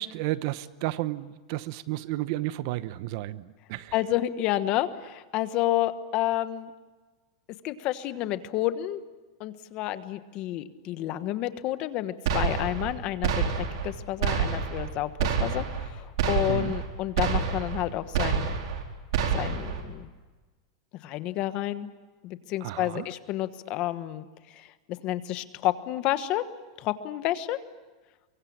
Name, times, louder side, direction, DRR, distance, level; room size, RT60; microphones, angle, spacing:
voice 1, 0.0-3.9 16.5-16.7 22.6-23.1, right 16 dB, 50° right, 15 dB, 0.9 m, -32 dB
voice 2, 3.9-6.7 7.6-9.0 9.4-13.4 13.8-18.5 19.3-20.1 21.0-21.9 22.2-24.2 24.5-24.7 25.0-26.5 26.8-27.6, left 14 dB, 35° left, 12 dB, 1.2 m, -30 dB
sound 1, 12.3-12.9 13.2-13.9 14.2-14.9 15.2-15.9 16.2-16.9 17.2-17.9 18.1-18.8 19.1-19.8, right 6 dB, 65° right, 4.3 m, -27 dB
24.0 x 23.5 x 8.7 m, 1.3 s
supercardioid pair, 160°, 3 cm